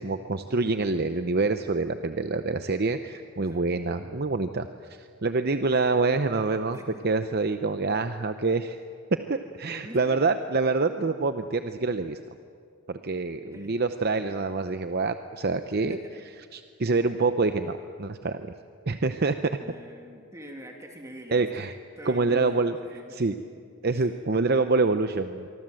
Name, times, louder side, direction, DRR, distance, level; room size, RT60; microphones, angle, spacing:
voice 1, 0.0-6.8 7.0-8.8 9.3-12.2 12.9-16.0 16.5-18.5 18.9-19.6 21.3-21.7 22.1-22.7 23.1-23.4 23.8-25.5, right 3 dB, 45° right, 9 dB, 0.7 m, -26 dB
voice 2, 9.6-10.3 13.5-13.8 15.9-16.0 19.6-21.7 22.0-23.2 23.9-24.1, equal, 15° right, 2 dB, 2.3 m, -45 dB
25.5 x 24.0 x 7.7 m, 2.3 s
head